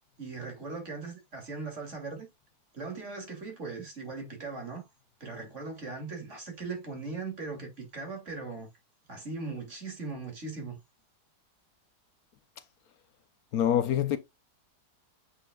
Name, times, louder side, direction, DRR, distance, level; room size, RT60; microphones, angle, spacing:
voice 1, 0.2-2.3 2.7-4.8 5.2-8.7 9.1-10.8, right 4 dB, 45° right, 3.0 m, -39 dB
voice 2, 13.5-14.2, left 10 dB, 70° left, 1.1 m, -25 dB
8.0 x 5.6 x 2.3 m
omnidirectional pair, 1.7 m